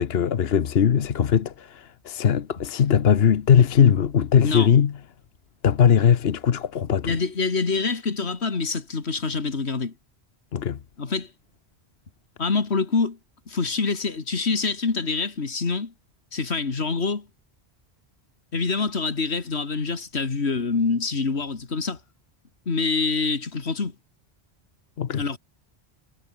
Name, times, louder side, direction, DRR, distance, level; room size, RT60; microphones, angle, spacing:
voice 1, 0.0-5.0 5.6-7.2 10.5-10.8 25.0-25.3, left 8 dB, 70° left, 1.2 m, -20 dB
voice 2, 7.0-9.9 11.0-11.3 12.4-13.2 13.5-15.9 16.3-17.3 18.5-22.0 22.7-23.9 25.1-25.4, left 4 dB, 85° left, 2.4 m, -26 dB
omnidirectional pair, 1.1 m